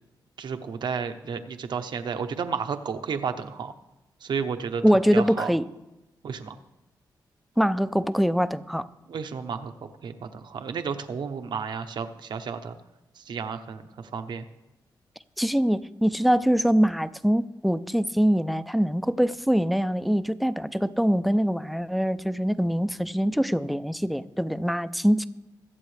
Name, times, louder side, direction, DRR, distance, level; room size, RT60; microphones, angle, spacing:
voice 1, 0.4-3.7 4.2-5.5 6.2-6.6 9.1-12.8 13.2-14.5, right 6 dB, 75° right, 8 dB, 0.9 m, -32 dB
voice 2, 4.8-5.6 7.6-8.9 15.4-25.3, equal, ahead, 13 dB, 0.5 m, -23 dB
23.0 x 7.8 x 3.3 m, 0.99 s
cardioid pair, 90°, 8 cm